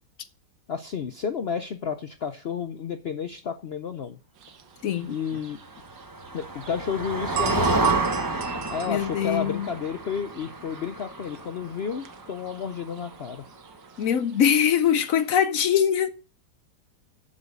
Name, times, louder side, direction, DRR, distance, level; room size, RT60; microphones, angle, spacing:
voice 1, 0.7-4.2 5.1-5.6 6.3-7.9 8.7-13.5, left 7 dB, 80° left, 0.5 m, -31 dB
sound 1, 4.4-15.3, right 11 dB, 85° right, 1.7 m, -37 dB
voice 2, 4.8-5.1 8.9-9.7 14.0-16.1, left 9 dB, 60° left, 0.9 m, -22 dB
Motor vehicle (road), 5.6-13.4, right 2 dB, 15° right, 0.7 m, -31 dB
7.2 x 7.1 x 8.0 m
omnidirectional pair, 1.9 m